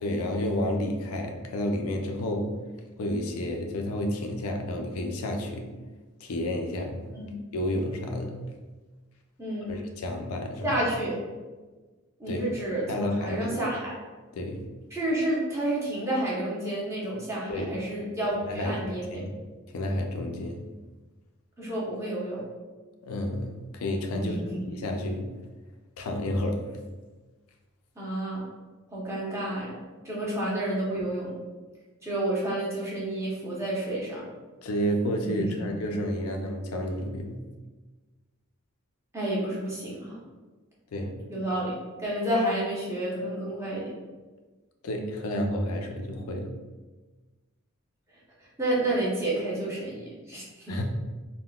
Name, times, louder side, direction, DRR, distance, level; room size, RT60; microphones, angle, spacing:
voice 1, 0.0-2.6 3.0-5.7 6.2-7.1 7.5-8.4 9.7-10.8 12.3-12.5 12.9-13.6 14.3-14.7 17.5-17.7 18.4-19.4 19.7-20.7 23.0-24.4 24.7-25.4 26.0-26.7 34.6-37.5 40.9-41.2 44.8-46.6 50.7-50.8, left 1 dB, 75° left, 3 dB, 0.4 m, -30 dB
voice 2, 9.4-9.8 10.6-11.2 12.2-13.9 14.9-19.2 21.6-22.4 24.1-24.6 28.0-28.4 28.9-29.8 30.0-31.3 32.0-34.2 35.3-35.4 39.1-40.2 41.3-41.7 42.0-43.9 48.6-50.8, right 1 dB, 15° right, -7 dB, 0.7 m, -30 dB
3.7 x 2.1 x 2.3 m, 1.3 s
head